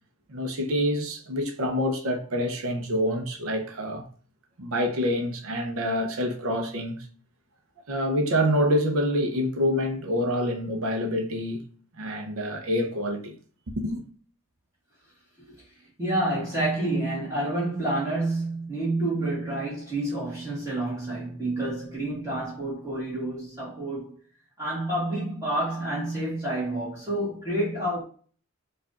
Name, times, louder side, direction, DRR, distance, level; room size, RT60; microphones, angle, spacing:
voice 1, 0.3-4.1 4.6-7.1 7.9-11.6 11.9-13.4 13.7-14.0, equal, 75° right, 0.7 m, -27 dB
voice 2, 16.0-24.2 24.6-28.0, right 1 dB, 15° right, 1.5 m, -29 dB
4.7 x 2.5 x 2.4 m
head